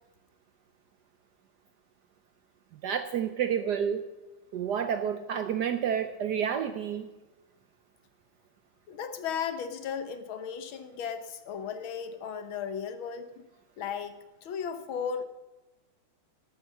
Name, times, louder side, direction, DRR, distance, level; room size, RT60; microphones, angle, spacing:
voice 1, 2.8-4.0 4.5-7.1, right 8 dB, 70° right, 9 dB, 1.0 m, -29 dB
voice 2, 8.9-13.3 13.8-15.2, left 7 dB, 70° left, 9 dB, 1.8 m, -35 dB
12.0 x 9.1 x 6.1 m, 1.1 s
omnidirectional pair, 2.3 m